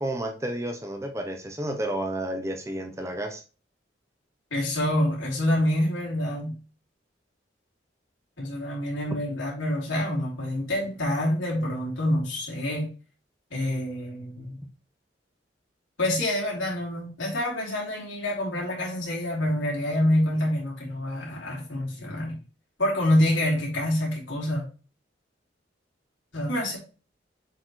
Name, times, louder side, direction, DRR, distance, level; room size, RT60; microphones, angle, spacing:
voice 1, 0.0-3.4, right 1 dB, 15° right, 4 dB, 0.7 m, -31 dB
voice 2, 4.5-6.6 8.4-12.9 13.5-14.6 16.0-22.4 22.8-24.6 26.3-26.8, left 1 dB, 85° left, -3 dB, 3.2 m, -27 dB
7.6 x 4.5 x 3.1 m, 0.35 s
head